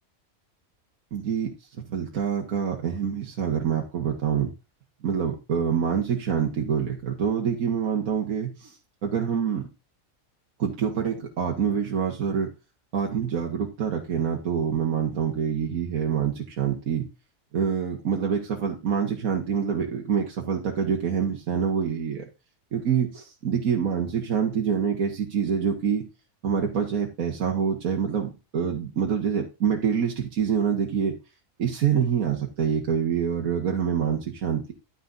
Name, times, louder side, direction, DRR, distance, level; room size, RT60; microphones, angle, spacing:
voice 1, 1.1-1.5 1.9-4.5 5.0-8.7 9.0-9.6 10.6-12.5 12.9-17.1 17.5-22.2 22.7-26.0 26.4-31.1 31.6-34.7, right 7 dB, 75° right, 1 dB, 1.7 m, -26 dB
11.0 x 9.6 x 2.7 m, 0.27 s
omnidirectional pair, 1.5 m